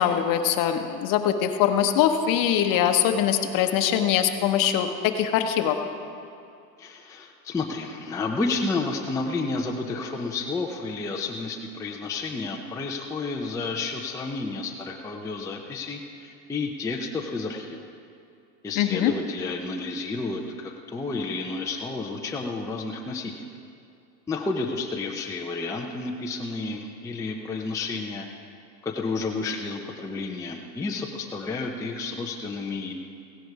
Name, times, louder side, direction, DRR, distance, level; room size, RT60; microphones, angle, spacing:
voice 1, 0.0-5.8 18.8-19.1, left 9 dB, 40° left, 6 dB, 1.1 m, -22 dB
voice 2, 6.8-17.9 18.6-23.5 24.3-28.3 28.8-32.9, left 3 dB, 5° left, 0 dB, 0.6 m, -31 dB
16.5 x 10.5 x 4.7 m, 2.6 s
supercardioid pair, 130°, 50 cm